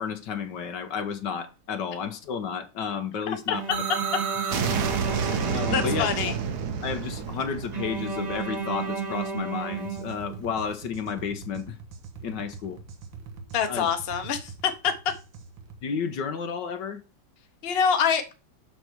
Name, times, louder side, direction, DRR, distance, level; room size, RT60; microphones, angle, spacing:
voice 1, 0.0-3.8 5.5-6.3 6.8-11.8 12.2-12.8 13.7-13.9 15.8-17.0, left 6 dB, 70° left, 1.5 m, -32 dB
Bowed string instrument, 3.5-6.7 7.7-10.6, right 5 dB, 25° right, 1.3 m, -33 dB
sound 1, 3.7-9.4, right 6 dB, 60° right, 1.5 m, -30 dB
voice 2, 5.7-6.3 13.5-14.5 14.8-14.9 17.6-18.3, left 7 dB, 35° left, 1.1 m, -25 dB
sound 2, 9.7-15.8, right 4 dB, 85° right, 2.0 m, -44 dB
6.6 x 6.5 x 4.5 m
omnidirectional pair, 2.1 m